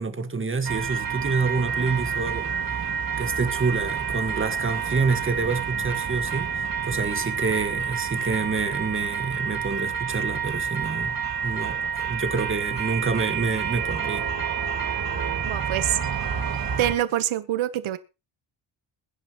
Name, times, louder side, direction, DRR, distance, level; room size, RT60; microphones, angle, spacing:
voice 1, 0.0-2.6 3.2-14.2, right 4 dB, 25° right, 1.8 m, -27 dB
sound 1, 0.6-16.9, right 7 dB, 45° right, 2.3 m, -28 dB
voice 2, 15.4-16.0 16.8-18.0, right 12 dB, 85° right, 1.2 m, -25 dB
22.0 x 10.0 x 3.1 m
wide cardioid pair, 130°, 47 cm